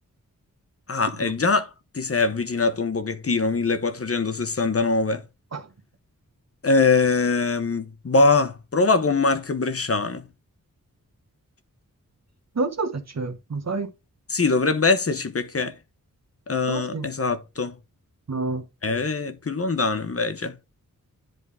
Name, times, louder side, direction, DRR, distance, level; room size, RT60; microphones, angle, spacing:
voice 1, 0.9-1.7 1.9-5.2 6.6-10.2 14.3-15.7 16.5-17.7 18.8-20.5, left 3 dB, 45° left, 0.9 m, -22 dB
voice 2, 12.6-13.9 16.7-17.1 18.3-18.6, right 3 dB, 50° right, 1.1 m, -28 dB
10.5 x 3.8 x 3.5 m
wide cardioid pair, 95°, 33 cm